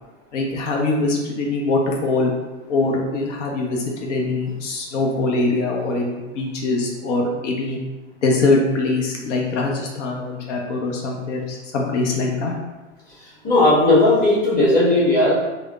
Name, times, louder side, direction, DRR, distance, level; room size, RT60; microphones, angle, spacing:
voice 1, 0.3-2.3 2.7-7.8 8.2-12.5, left 3 dB, 80° left, 0 dB, 0.6 m, -22 dB
voice 2, 13.4-15.3, left 2 dB, 25° left, -9 dB, 1.3 m, -16 dB
3.1 x 2.1 x 2.3 m, 1.2 s
hypercardioid pair, 105°, 36 cm